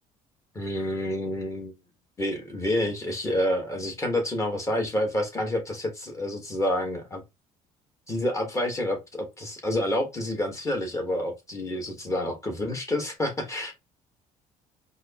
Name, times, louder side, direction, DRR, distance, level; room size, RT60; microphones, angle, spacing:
voice 1, 0.5-1.7 2.2-7.2 8.1-13.7, left 1 dB, 20° left, 1.4 m, -28 dB
4.7 x 2.1 x 2.9 m
cardioid pair, 115°, 15 cm